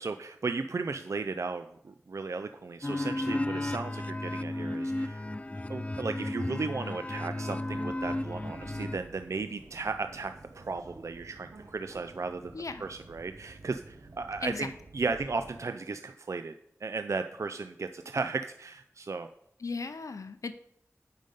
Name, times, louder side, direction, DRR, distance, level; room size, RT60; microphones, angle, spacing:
voice 1, 0.0-5.2 5.7-12.5 12.8-16.5 16.8-19.3, right 4 dB, 65° right, 8 dB, 0.4 m, -35 dB
sound 1, 2.8-9.0, left 1 dB, 25° left, 0.4 m, -33 dB
Subway metro underground, 7.6-15.6, right 2 dB, 85° right, 0.9 m, -51 dB
voice 2, 12.5-12.8 14.4-14.7 19.6-20.5, left 4 dB, 80° left, 11 dB, 0.6 m, -36 dB
9.1 x 5.3 x 5.3 m, 0.72 s
wide cardioid pair, 55°, 6 cm